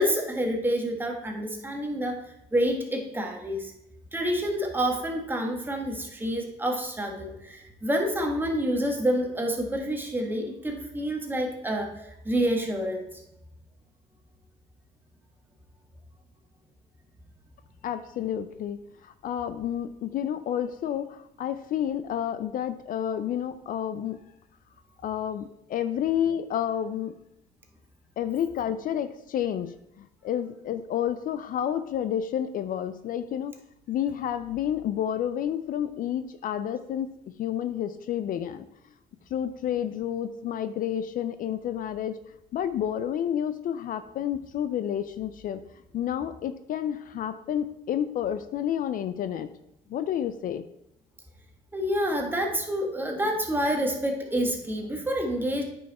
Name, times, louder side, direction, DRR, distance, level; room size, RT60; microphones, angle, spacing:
voice 1, 0.0-2.2 2.5-3.7 4.1-13.1 51.7-55.6, equal, 10° right, 2 dB, 1.5 m, -28 dB
voice 2, 17.8-24.2 25.0-27.1 28.2-33.6 33.9-38.7 39.3-42.2 42.5-45.6 45.9-49.5 49.9-50.7, left 10 dB, 55° left, 12 dB, 0.4 m, -30 dB
9.1 x 5.5 x 4.2 m, 0.84 s
cardioid pair, 110°, 17 cm